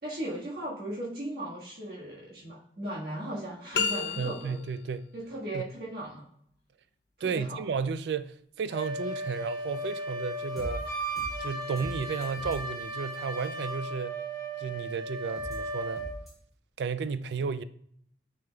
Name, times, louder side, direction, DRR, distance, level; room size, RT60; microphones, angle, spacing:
voice 1, 0.0-4.6 5.1-6.2 7.2-7.6, right 1 dB, 55° right, 1.5 m, -37 dB
sound 1, 3.7-4.8, left 5 dB, 70° left, 0.6 m, -31 dB
voice 2, 4.2-5.1 5.5-5.7 7.2-10.8 11.4-14.2 14.6-16.0 16.8-17.6, right 5 dB, 75° right, 0.3 m, -33 dB
Wind instrument woodwind instrument, 8.7-16.1, right 1 dB, 25° right, 2.3 m, -36 dB
sound 2, 10.6-10.7 11.2-11.3 11.8-11.9 12.2-12.6 15.4-15.6 16.0-16.3, equal, ahead, 2.5 m, -40 dB
9.6 x 5.2 x 2.2 m
head